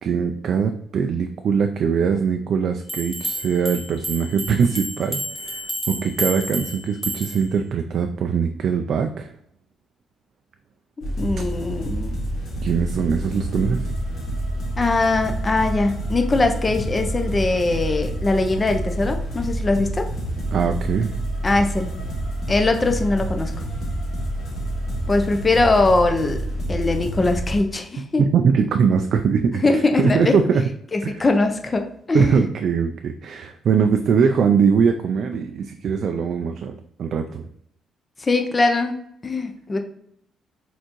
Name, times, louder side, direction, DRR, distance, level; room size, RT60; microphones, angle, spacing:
voice 1, 0.0-9.3 12.6-13.9 20.5-21.1 28.2-30.6 31.0-31.2 32.1-37.5, right 6 dB, 65° right, 6 dB, 0.3 m, -21 dB
sound 1, 2.9-7.5, right 1 dB, ahead, 1.5 m, -30 dB
sound 2, 11.0-27.6, right 1 dB, 65° left, 1.7 m, -28 dB
voice 2, 11.0-12.2 14.8-20.1 21.4-21.9 22.5-23.5 25.1-26.4 26.7-28.2 29.6-30.4 30.9-32.4 38.2-39.8, left 3 dB, 30° left, 5 dB, 0.6 m, -21 dB
4.3 x 3.8 x 3.0 m, 0.71 s
cardioid pair, 90°, 0 cm